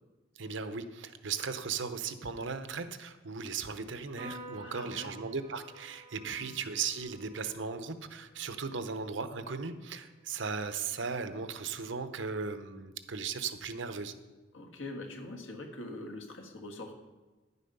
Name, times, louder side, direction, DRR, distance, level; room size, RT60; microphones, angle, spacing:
voice 1, 0.4-14.1, right 5 dB, 75° right, 10 dB, 0.8 m, -37 dB
Piano, 4.2-10.8, right 2 dB, 25° right, 3.1 m, -52 dB
voice 2, 4.6-5.2 6.2-6.5 14.5-17.0, left 2 dB, 85° left, 3 dB, 1.6 m, -43 dB
10.5 x 8.2 x 5.4 m, 1.2 s
head